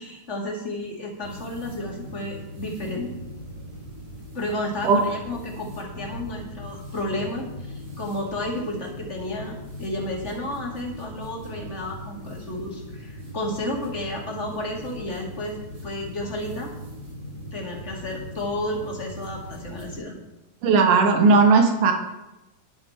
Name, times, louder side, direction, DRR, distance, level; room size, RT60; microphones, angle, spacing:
voice 1, 0.0-3.1 4.3-15.6 15.8-16.7 17.5-20.2, left 1 dB, 25° left, -1 dB, 2.3 m, -32 dB
sound 1, 1.2-20.0, equal, 40° right, 4.4 m, -39 dB
voice 2, 20.6-21.9, right 4 dB, 80° right, 4 dB, 3.0 m, -17 dB
12.5 x 11.0 x 4.3 m, 0.98 s
omnidirectional pair, 3.6 m